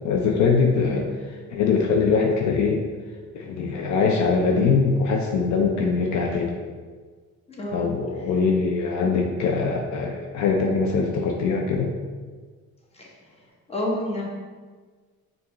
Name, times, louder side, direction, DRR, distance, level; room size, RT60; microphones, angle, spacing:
voice 1, 0.0-1.1 1.5-2.8 3.3-6.5 7.7-11.9, left 5 dB, 70° left, 0 dB, 0.5 m, -22 dB
voice 2, 7.5-7.9 12.9-13.1 13.7-14.2, left 1 dB, 20° left, -3 dB, 1.0 m, -29 dB
4.5 x 2.5 x 2.9 m, 1.5 s
cardioid pair, 90°, 30 cm